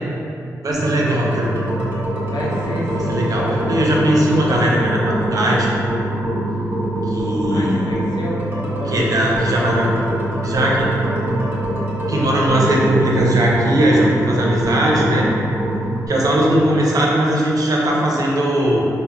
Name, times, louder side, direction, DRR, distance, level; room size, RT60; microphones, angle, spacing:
voice 1, 0.6-1.7 3.1-5.7 7.1-7.9 8.9-10.0 10.4-11.0 12.1-15.3 16.1-18.9, right 1 dB, 60° right, -3 dB, 0.5 m, -18 dB
sound 1, 0.7-16.1, right 1 dB, 30° right, 0.9 m, -24 dB
voice 2, 2.2-3.8 7.5-9.8, left 1 dB, 85° left, -4 dB, 0.4 m, -29 dB
3.7 x 2.0 x 2.2 m, 2.6 s
cardioid pair, 50°, 7 cm